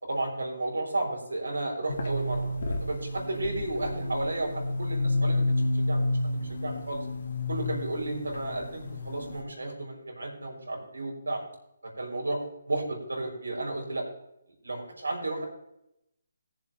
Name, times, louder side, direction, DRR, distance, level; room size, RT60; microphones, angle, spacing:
voice 1, 0.0-5.4 5.8-7.0 7.5-11.4 11.8-12.4 12.7-14.1 14.6-15.5, right 2 dB, 80° right, 0 dB, 4.0 m, -33 dB
sound 1, 1.9-9.4, left 2 dB, 60° left, 2.0 m, -30 dB
19.5 x 7.2 x 3.4 m, 0.82 s
figure-of-eight pair, 150°, 0 cm